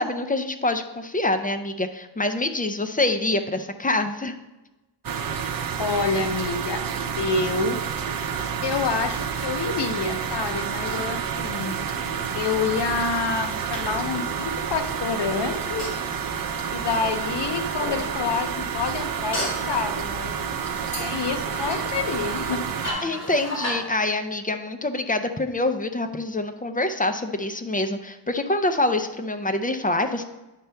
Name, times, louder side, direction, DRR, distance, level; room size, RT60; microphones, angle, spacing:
voice 1, 0.0-4.4 23.0-30.2, left 2 dB, 20° left, 7 dB, 0.5 m, -25 dB
sound 1, 5.0-22.9, right 7 dB, 55° right, 0.6 m, -29 dB
voice 2, 5.8-6.8 7.1-7.8 8.6-11.7 12.3-15.9 16.7-20.4 21.0-22.6, left 5 dB, 70° left, 7 dB, 0.7 m, -27 dB
sound 2, 12.9-17.2 17.8-18.1 19.3-19.7 20.9-23.8, left 1 dB, 40° left, 2.3 m, -34 dB
9.0 x 5.5 x 3.4 m, 1.0 s
wide cardioid pair, 130°, 43 cm